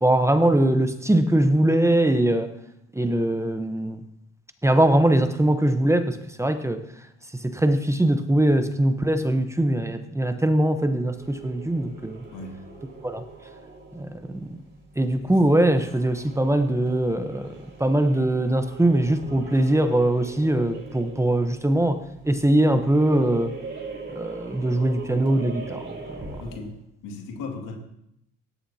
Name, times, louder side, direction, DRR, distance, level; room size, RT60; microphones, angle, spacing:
voice 1, 0.0-2.5 2.9-4.0 4.6-6.8 7.4-12.2 13.0-13.2 13.9-14.6 15.0-17.5 17.8-23.5 24.1-26.4, right 1 dB, 10° right, 8 dB, 1.0 m, -22 dB
sound 1, 11.1-26.8, right 3 dB, 35° right, 4.5 m, -41 dB
voice 2, 12.3-12.6 15.2-15.3 26.4-26.7 27.0-27.8, left 3 dB, 85° left, 1 dB, 2.3 m, -36 dB
17.0 x 11.0 x 2.9 m, 0.79 s
supercardioid pair, 80°, 32 cm